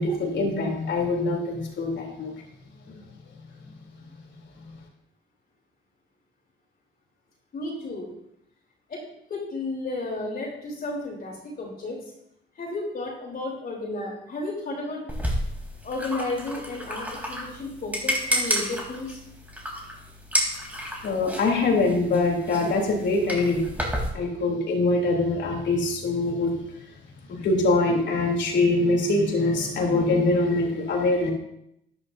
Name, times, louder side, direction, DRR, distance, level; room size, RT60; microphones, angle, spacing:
voice 1, 0.0-2.3 21.0-23.6 24.1-26.5 27.3-31.3, left 2 dB, 65° left, 0 dB, 3.4 m, -23 dB
voice 2, 7.5-8.1 8.9-9.0 9.3-12.0 12.6-15.0 15.8-19.2, left 2 dB, 50° left, -3 dB, 3.8 m, -33 dB
sound 1, 15.1-24.1, equal, 10° right, 3.4 m, -31 dB
13.0 x 11.0 x 2.7 m, 0.76 s
cardioid pair, 90°, 20 cm